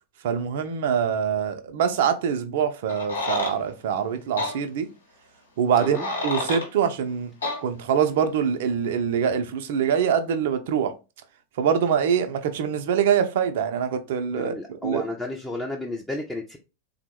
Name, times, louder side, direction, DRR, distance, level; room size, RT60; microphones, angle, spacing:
voice 1, 0.2-4.9 5.6-7.3 7.6-10.9 11.6-15.0, right 7 dB, 55° right, 0.4 m, -24 dB
sound 1, 2.9-3.6 4.4-4.5 5.7-6.7 7.4-7.6, left 2 dB, 75° left, 0.9 m, -28 dB
voice 2, 5.8-6.1 14.4-16.6, left 2 dB, 5° left, 0.4 m, -32 dB
3.5 x 2.0 x 3.0 m
figure-of-eight pair, 90°, 0 cm